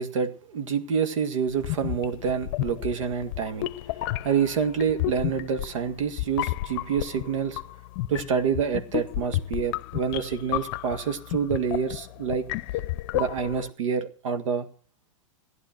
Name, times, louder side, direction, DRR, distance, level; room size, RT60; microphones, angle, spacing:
voice 1, 0.0-3.7 4.2-7.6 8.1-12.5 13.1-14.7, right 6 dB, 75° right, 7 dB, 2.0 m, -27 dB
sound 1, 1.6-13.7, left 16 dB, 50° left, 0.7 m, -32 dB
14.5 x 11.0 x 6.0 m, 0.43 s
hypercardioid pair, 130°, 17 cm